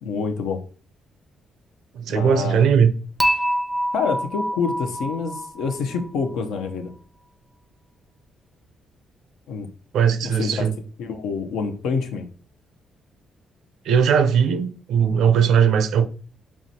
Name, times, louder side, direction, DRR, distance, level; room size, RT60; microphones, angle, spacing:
voice 1, 0.0-0.6 2.1-2.7 3.9-6.9 9.5-9.7 10.2-10.7 11.0-12.3, left 5 dB, 90° left, 0.6 m, -27 dB
voice 2, 1.9-2.9 9.9-10.8 13.8-16.1, right 7 dB, 75° right, 0.4 m, -19 dB
Dishes pots and pans / Chink clink, 3.2-6.3, equal, ahead, 0.5 m, -26 dB
4.7 x 3.0 x 2.7 m
cardioid pair, 90°, 0 cm